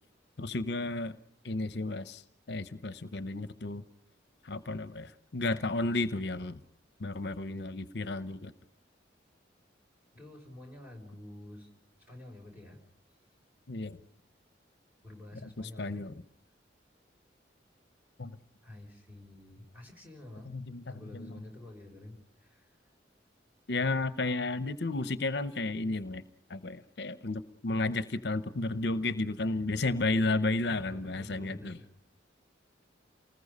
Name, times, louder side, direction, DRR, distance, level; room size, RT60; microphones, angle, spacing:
voice 1, 0.4-1.2 1.4-2.2 2.5-3.8 4.4-6.6 7.0-8.5 13.7-14.0 15.6-16.1 18.2-18.3 20.5-20.8 21.1-21.3 23.7-26.2 26.5-31.8, left 2 dB, 60° left, 13 dB, 0.8 m, -32 dB
voice 2, 10.1-11.7 12.0-12.8 13.1-13.2 15.0-16.0 18.6-20.5 20.9-22.8 30.6-31.9, left 1 dB, 10° right, 1 dB, 6.0 m, -49 dB
29.5 x 20.0 x 5.4 m, 0.64 s
head